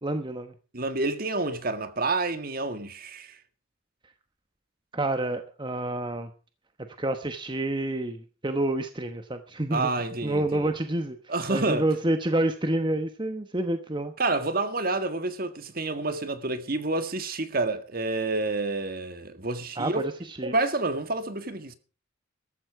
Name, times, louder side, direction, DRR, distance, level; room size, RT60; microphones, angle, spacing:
voice 1, 0.0-0.5 4.9-6.3 7.0-9.9 10.2-11.2 11.5-14.1 19.8-20.5, right 1 dB, 25° right, 1.1 m, -28 dB
voice 2, 0.7-3.4 9.7-10.7 11.3-11.9 14.2-20.0 20.4-21.7, right 2 dB, 45° right, 1.8 m, -29 dB
14.5 x 13.0 x 4.8 m
head